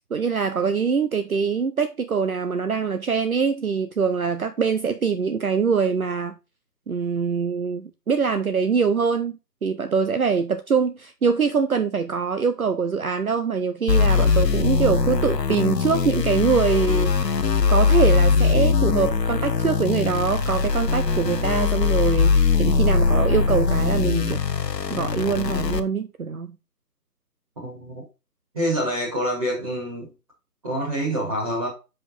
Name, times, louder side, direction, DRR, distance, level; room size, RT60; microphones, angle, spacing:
voice 1, 0.1-6.4 6.9-17.4 17.7-24.4 24.9-26.6, right 5 dB, 60° right, 0.8 m, -23 dB
sound 1, 13.9-25.8, left 5 dB, 80° left, 0.9 m, -21 dB
voice 2, 27.6-28.0 28.5-30.1 30.6-31.7, equal, 20° right, 1.8 m, -26 dB
6.2 x 5.2 x 4.0 m
figure-of-eight pair, 160°, 50 cm